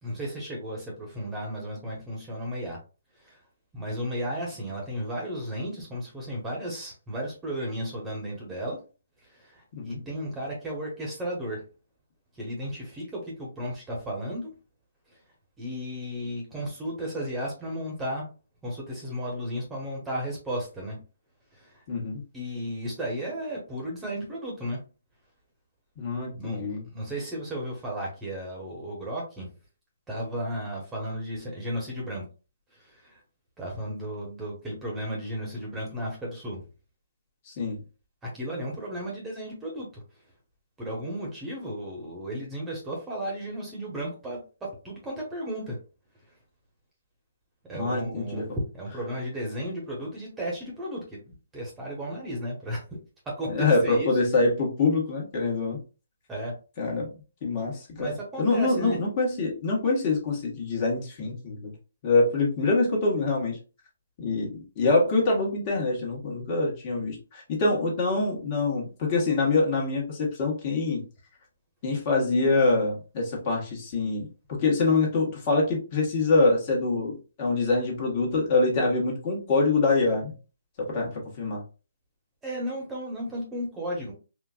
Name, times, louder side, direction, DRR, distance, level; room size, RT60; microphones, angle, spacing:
voice 1, 0.0-2.8 3.2-3.4 3.7-8.8 9.2-11.6 12.4-14.5 15.6-18.3 18.6-21.0 21.5-21.8 22.3-24.8 26.4-29.5 30.1-32.2 32.7-33.2 33.6-36.6 38.2-39.9 40.8-45.8 47.6-53.0 53.2-54.2 56.3-56.5 58.0-59.0 82.4-84.1, equal, 10° right, -3 dB, 1.2 m, -34 dB
voice 2, 21.9-22.2 26.0-26.8 37.5-37.8 47.7-48.5 53.5-55.8 56.8-57.1 57.4-61.7 62.0-63.6 64.2-71.0 71.8-80.3 80.8-81.6, left 3 dB, 35° left, -2 dB, 1.4 m, -25 dB
4.3 x 2.4 x 2.4 m, 0.33 s
figure-of-eight pair, 145°, 0 cm